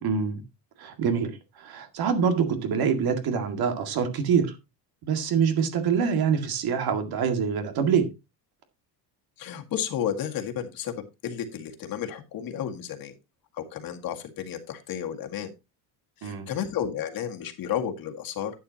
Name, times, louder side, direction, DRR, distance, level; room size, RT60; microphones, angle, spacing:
voice 1, 0.0-0.4 0.8-4.6 5.0-8.1 16.2-16.5, right 6 dB, 60° right, 2.0 m, -25 dB
voice 2, 9.4-10.9 11.2-13.1 13.5-15.5 16.2-18.5, left 9 dB, 55° left, 2.0 m, -32 dB
11.5 x 9.0 x 2.8 m
cardioid pair, 155°, 42 cm